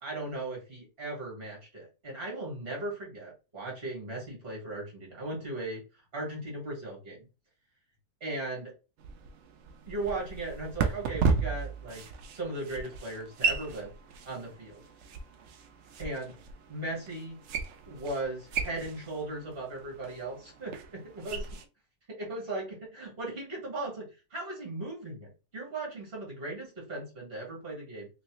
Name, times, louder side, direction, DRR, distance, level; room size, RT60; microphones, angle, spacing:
voice 1, 0.0-5.8 6.1-7.2 8.2-8.7 9.9-12.0 12.3-13.9 14.3-14.8 16.0-16.4 16.7-17.4 17.9-21.5 22.1-28.1, right 2 dB, 40° right, -3 dB, 1.7 m, -37 dB
sound 1, 9.0-21.6, right 5 dB, 70° right, 0.7 m, -35 dB
3.2 x 3.0 x 2.9 m, 0.31 s
omnidirectional pair, 1.7 m